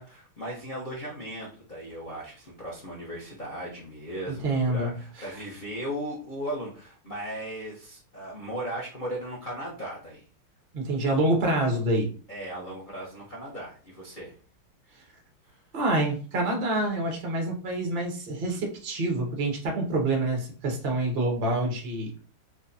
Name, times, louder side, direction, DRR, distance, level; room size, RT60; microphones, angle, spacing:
voice 1, 0.0-10.3 12.3-14.3 14.9-15.1 15.4-15.6, right 1 dB, 70° left, -5 dB, 0.4 m, -37 dB
voice 2, 4.4-4.9 5.2-5.3 10.7-12.1 15.7-22.1, right 2 dB, 90° right, 2 dB, 0.5 m, -27 dB
4.9 x 2.2 x 2.6 m, 0.41 s
omnidirectional pair, 2.3 m